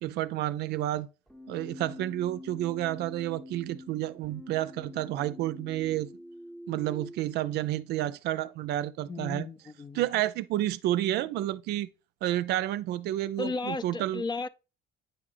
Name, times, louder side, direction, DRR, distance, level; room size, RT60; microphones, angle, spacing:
voice 1, 0.0-1.1 1.5-6.1 6.7-9.5 9.9-11.9 12.2-14.2, right 14 dB, 80° right, 0.5 m, -30 dB
Keyboard (musical), 1.3-7.2, left 1 dB, ahead, 0.8 m, -45 dB
voice 2, 9.1-10.1 13.4-14.5, left 3 dB, 25° left, 0.5 m, -34 dB
9.0 x 4.9 x 2.6 m
cardioid pair, 110°, 17 cm